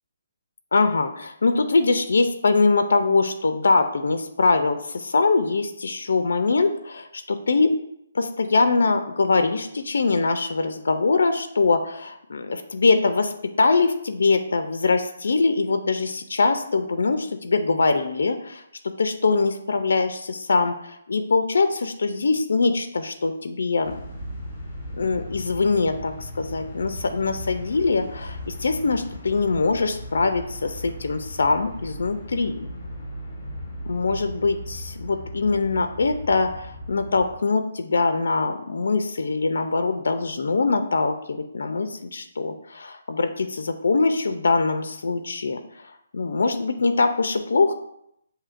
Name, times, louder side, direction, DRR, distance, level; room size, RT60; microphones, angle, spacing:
voice 1, 0.7-7.7 8.1-18.6 19.0-24.0 25.0-32.7 33.9-45.6 46.1-47.7, left 3 dB, 75° left, 8 dB, 0.4 m, -23 dB
sound 1, 23.8-37.3, left 1 dB, 20° left, 1.1 m, -37 dB
7.1 x 2.7 x 2.5 m, 0.76 s
hypercardioid pair, 170°, 0 cm